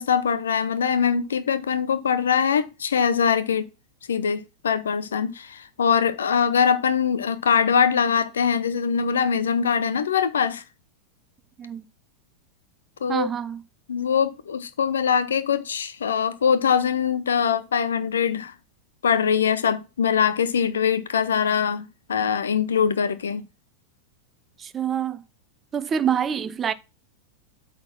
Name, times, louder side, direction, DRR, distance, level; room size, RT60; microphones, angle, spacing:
voice 1, 0.0-3.7 4.1-10.6 13.0-13.3 13.9-18.5 19.0-23.4, left 7 dB, 65° left, 0.8 m, -22 dB
voice 2, 13.1-13.6 24.6-25.2 25.7-26.7, right 8 dB, 25° right, 0.7 m, -26 dB
8.5 x 4.2 x 6.0 m
figure-of-eight pair, 90°, 0 cm